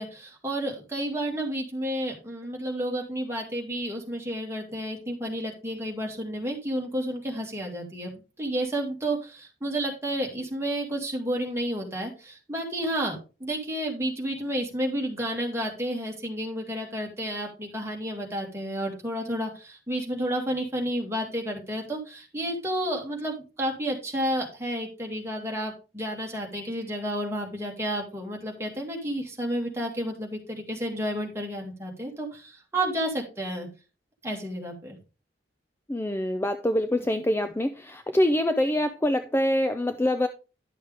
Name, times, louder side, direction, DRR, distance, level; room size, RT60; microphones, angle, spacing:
voice 1, 0.0-33.7 34.2-35.0, right 1 dB, 15° right, 2.0 m, -31 dB
voice 2, 35.9-40.3, left 1 dB, 15° left, 0.4 m, -25 dB
11.0 x 6.4 x 3.4 m
head